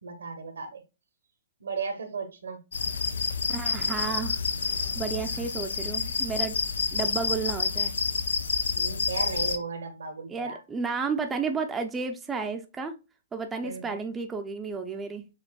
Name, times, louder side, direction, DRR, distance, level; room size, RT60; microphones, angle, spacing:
voice 1, 0.0-0.8 1.6-2.6 5.3-5.4 8.7-10.6 13.6-14.1, right 4 dB, 85° right, 7 dB, 1.2 m, -35 dB
sound 1, 2.7-9.6, left 5 dB, 85° left, 0.5 m, -29 dB
voice 2, 3.5-4.4 5.0-6.6 6.9-7.9 10.3-12.9 13.3-15.3, right 5 dB, 10° right, 4 dB, 0.5 m, -32 dB
6.6 x 2.5 x 2.3 m, 0.28 s
hypercardioid pair, 140°, 0 cm